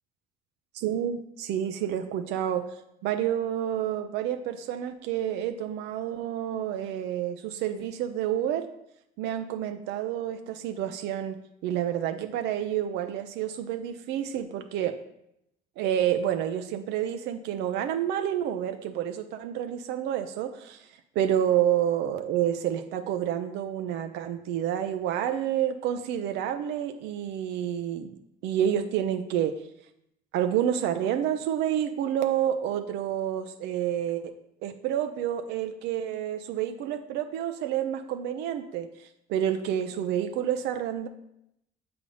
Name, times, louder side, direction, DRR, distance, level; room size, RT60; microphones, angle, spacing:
voice 1, 0.8-2.8 3.0-8.7 9.2-11.4 11.6-15.0 15.8-20.9 21.2-28.2 28.4-29.5 30.3-34.3 34.6-41.1, right 10 dB, 85° right, 7 dB, 0.5 m, -29 dB
7.0 x 3.4 x 5.3 m, 0.79 s
cardioid pair, 110°, 17 cm